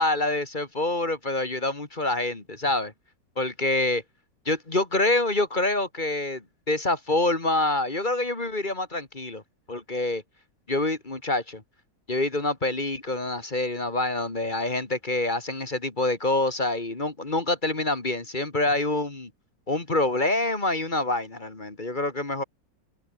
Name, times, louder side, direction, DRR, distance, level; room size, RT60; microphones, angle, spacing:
voice 1, 0.0-2.9 3.4-4.0 4.5-9.4 9.7-10.2 10.7-11.6 12.1-19.3 19.7-22.4, left 2 dB, 25° left, 2.4 m, -26 dB
omnidirectional pair, 2.0 m